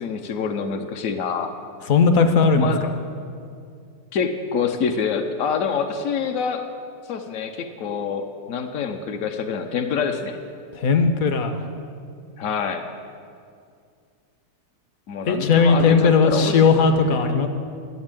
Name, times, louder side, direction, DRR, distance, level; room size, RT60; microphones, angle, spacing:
voice 1, 0.0-1.5 2.6-2.8 4.1-6.6 7.1-10.4 12.4-12.9 15.1-16.7, left 6 dB, 80° left, 4 dB, 0.7 m, -26 dB
voice 2, 1.8-2.9 10.7-11.6 15.3-17.5, left 5 dB, 60° left, 7 dB, 1.0 m, -17 dB
12.0 x 7.4 x 8.9 m, 2.3 s
omnidirectional pair, 2.3 m